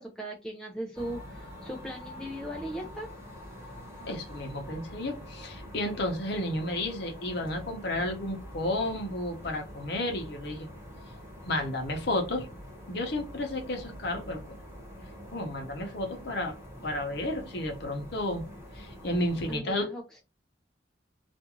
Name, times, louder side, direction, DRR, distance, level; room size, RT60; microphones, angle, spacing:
voice 1, 0.0-3.1 19.5-20.2, right 1 dB, 5° left, 0 dB, 0.3 m, -38 dB
sound 1, 0.9-19.6, equal, 15° right, 1.1 m, -45 dB
voice 2, 4.1-10.7 11.4-12.5 12.9-14.4 15.3-16.5 16.8-18.4 18.7-19.9, left 1 dB, 60° left, 3 dB, 0.7 m, -32 dB
2.5 x 2.4 x 2.9 m, 0.27 s
head